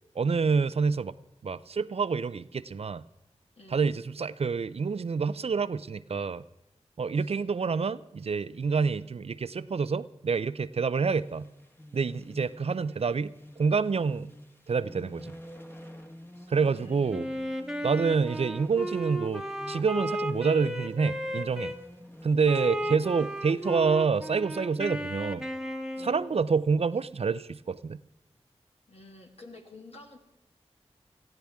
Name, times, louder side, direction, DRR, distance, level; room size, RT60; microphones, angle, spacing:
voice 1, 0.1-1.1 1.4-3.0 3.7-6.4 7.0-11.5 11.9-14.3 14.7-15.4 16.5-17.3 17.8-21.7 22.2-25.4 26.0-28.0, right 5 dB, 60° right, 16 dB, 0.4 m, -27 dB
sound 1, 10.9-24.0, equal, 20° left, 1.4 m, -48 dB
voice 2, 16.4-17.3 22.4-23.3 26.0-26.2 28.9-30.2, left 2 dB, 60° left, 1 dB, 2.4 m, -50 dB
Wind instrument woodwind instrument, 17.1-21.8 22.4-26.4, equal, 5° right, 1.2 m, -34 dB
18.5 x 14.0 x 3.6 m, 0.91 s
wide cardioid pair, 55°, 12 cm